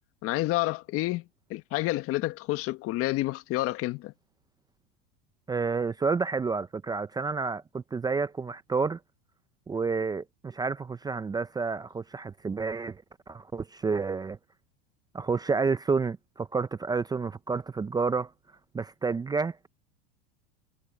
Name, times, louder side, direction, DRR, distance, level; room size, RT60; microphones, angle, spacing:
voice 1, 0.2-1.2 1.5-4.1, left 18 dB, 50° left, 1.5 m, -29 dB
voice 2, 5.5-9.0 9.7-14.4 15.1-18.3 18.7-19.7, right 4 dB, 15° right, 0.6 m, -30 dB
supercardioid pair, 115°, 30 cm